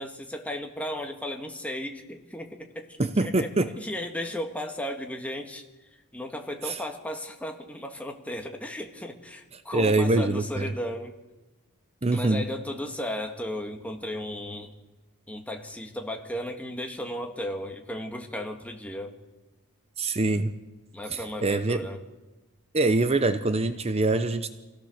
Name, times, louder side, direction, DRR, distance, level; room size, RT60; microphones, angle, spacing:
voice 1, 0.0-3.5 3.8-5.6 5.9-11.1 12.1-14.7 15.3-19.1 20.9-22.0, left 1 dB, 5° left, 3 dB, 1.7 m, -35 dB
voice 2, 3.0-3.7 6.6-6.8 9.7-10.7 12.0-12.4 20.0-20.5 21.1-21.9 22.7-24.5, right 2 dB, 25° right, 10 dB, 0.7 m, -24 dB
25.0 x 16.5 x 6.6 m, 1.1 s
head